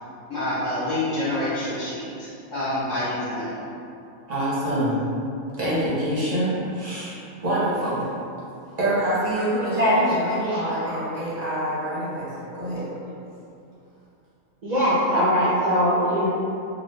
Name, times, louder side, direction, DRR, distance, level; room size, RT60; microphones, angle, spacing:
voice 1, 0.3-3.5, left 1 dB, 65° left, -10 dB, 1.2 m, -27 dB
voice 2, 4.3-5.0 5.6-8.1 8.8-12.9, right 1 dB, 35° right, -10 dB, 0.7 m, -26 dB
voice 3, 9.8-10.6 10.8-11.0 14.6-16.3, equal, 80° right, -10 dB, 0.3 m, -21 dB
2.9 x 2.3 x 3.2 m, 2.6 s
omnidirectional pair, 1.5 m